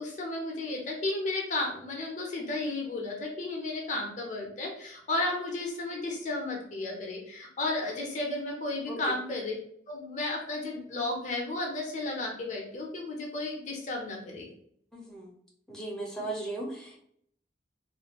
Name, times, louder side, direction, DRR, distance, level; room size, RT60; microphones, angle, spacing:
voice 1, 0.0-9.5 9.9-14.5, left 2 dB, 40° left, 1 dB, 0.6 m, -33 dB
voice 2, 14.9-15.3 15.7-17.0, right 2 dB, 5° left, -3 dB, 0.6 m, -37 dB
2.5 x 2.3 x 2.9 m, 0.65 s
head